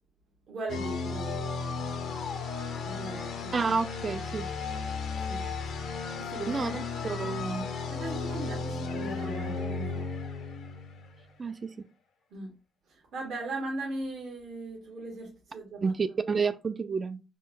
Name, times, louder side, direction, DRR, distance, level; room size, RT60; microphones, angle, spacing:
voice 1, 0.5-1.3 2.8-3.5 5.3-5.5 6.2-6.8 7.9-10.1 12.3-12.5 12.9-15.9, right 2 dB, 70° right, 1.0 m, -38 dB
sound 1, 0.7-11.3, left 4 dB, 70° left, 0.7 m, -35 dB
voice 2, 3.5-4.5 6.5-7.7 11.4-11.7 15.8-17.2, right 5 dB, 35° right, 0.3 m, -30 dB
3.7 x 2.2 x 2.5 m
cardioid pair, 90°, 0 cm